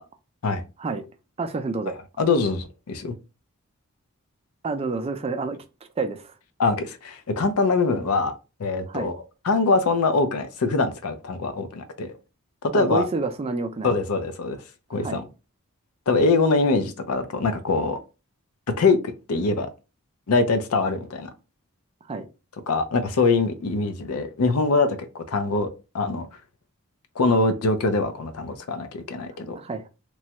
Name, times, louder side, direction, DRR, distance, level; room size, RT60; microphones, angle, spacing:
voice 1, 1.4-1.9 4.6-5.6 6.0-6.3 8.9-9.1 12.7-13.9 15.0-15.2 22.0-22.3 29.6-29.9, right 3 dB, 25° right, 0.4 m, -28 dB
voice 2, 2.2-3.1 6.6-8.3 8.6-9.2 9.4-12.1 12.6-13.0 13.8-14.6 14.9-15.2 16.1-18.0 18.8-19.7 20.3-21.3 22.7-25.7 25.9-26.3 27.2-29.6, left 3 dB, 80° left, 0.5 m, -23 dB
3.1 x 2.3 x 2.8 m
head